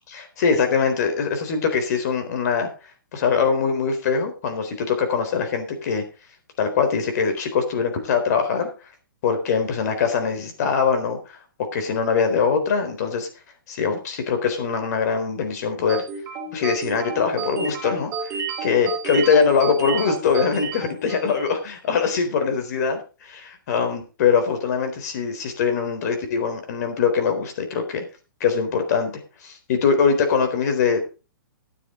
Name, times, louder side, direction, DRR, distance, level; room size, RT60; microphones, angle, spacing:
voice 1, 0.2-2.7 3.1-6.0 6.6-8.7 9.2-11.4 11.7-13.3 13.7-16.0 16.5-28.0 28.4-29.1 29.4-31.0, left 6 dB, 50° left, 6 dB, 3.9 m, -22 dB
sound 1, 15.9-21.6, right 4 dB, 25° right, 3.4 m, -31 dB
12.5 x 9.8 x 3.9 m, 0.32 s
figure-of-eight pair, 125°, 11 cm